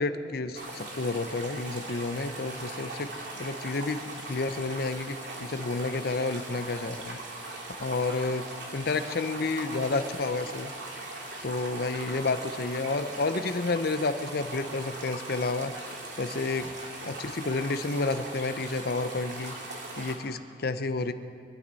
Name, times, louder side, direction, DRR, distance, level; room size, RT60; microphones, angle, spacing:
voice 1, 0.0-7.2 7.8-8.5 8.7-10.7 11.4-15.7 16.2-19.5 20.0-21.1, left 3 dB, 60° left, 11 dB, 0.7 m, -30 dB
sound 1, 0.5-20.2, right 2 dB, 85° right, 2.5 m, -40 dB
23.5 x 12.5 x 4.1 m, 2.3 s
head